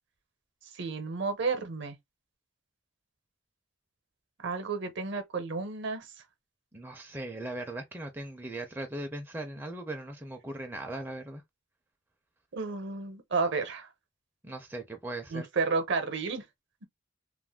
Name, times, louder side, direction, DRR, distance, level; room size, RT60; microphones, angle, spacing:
voice 1, 0.7-2.0 4.4-6.1 12.5-13.9 15.3-16.4, right 4 dB, 60° right, 0.7 m, -31 dB
voice 2, 6.7-11.4 14.4-15.5, right 1 dB, 10° right, 0.4 m, -39 dB
2.4 x 2.1 x 3.4 m
head